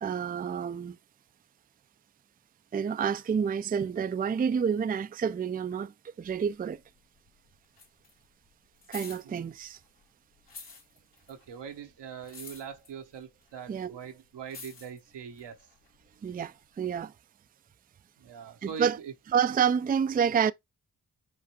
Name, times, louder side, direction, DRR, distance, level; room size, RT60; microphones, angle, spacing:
voice 1, 0.0-1.0 2.7-5.9 6.2-6.8 8.9-9.8 13.7-13.9 16.2-17.1 18.6-19.0 19.3-20.5, right 7 dB, 25° right, 0.4 m, -28 dB
Manual water sprayer, 6.2-7.3 7.5-10.0 10.4-16.3 17.0-17.1, left 4 dB, 80° left, 2.4 m, -49 dB
voice 2, 11.3-15.7 18.2-19.1, right 7 dB, 85° right, 1.0 m, -42 dB
5.0 x 2.3 x 4.3 m
cardioid pair, 45°, 41 cm